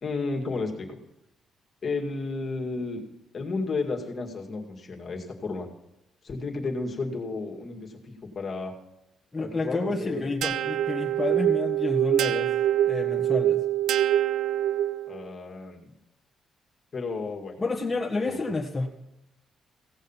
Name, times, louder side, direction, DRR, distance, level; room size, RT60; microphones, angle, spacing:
voice 1, 0.0-1.0 1.8-3.0 3.3-5.7 6.2-8.7 9.4-10.3 15.1-15.9 16.9-17.6 18.2-18.4, left 3 dB, 45° left, 1 dB, 2.1 m, -32 dB
voice 2, 9.3-12.5 12.8-13.6 17.6-18.9, left 3 dB, 15° left, -3 dB, 1.6 m, -29 dB
sound 1, 10.4-15.2, right 12 dB, 80° right, 0.5 m, -25 dB
16.5 x 6.4 x 5.7 m, 0.89 s
cardioid pair, 90°, 0 cm